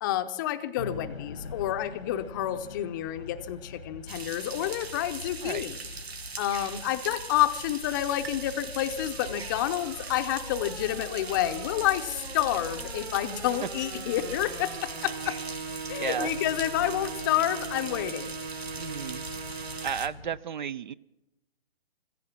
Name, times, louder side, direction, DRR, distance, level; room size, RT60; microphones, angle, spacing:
voice 1, 0.0-5.8 6.4-15.4 15.9-18.3, left 13 dB, 20° left, 9 dB, 0.6 m, -29 dB
sound 1, 0.8-20.4, left 4 dB, 90° left, 1.3 m, -45 dB
sound 2, 4.1-20.1, right 4 dB, 90° right, 1.1 m, -41 dB
sound 3, 8.2-20.0, right 5 dB, 15° right, 0.9 m, -41 dB
voice 2, 16.0-16.3 18.8-19.3 19.8-20.9, right 8 dB, 50° right, 22 dB, 0.5 m, -33 dB
15.0 x 15.0 x 6.0 m, 0.93 s
figure-of-eight pair, 135°, 31 cm